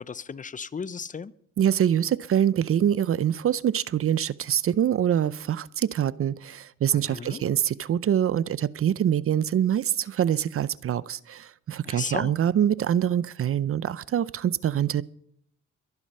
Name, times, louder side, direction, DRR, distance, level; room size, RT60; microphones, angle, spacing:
voice 1, 0.0-1.3 6.9-7.4 11.8-12.3, left 6 dB, 25° left, 0.6 m, -35 dB
voice 2, 1.6-15.0, right 10 dB, 50° right, 0.6 m, -25 dB
22.5 x 11.0 x 5.5 m
cardioid pair, 90°, 30 cm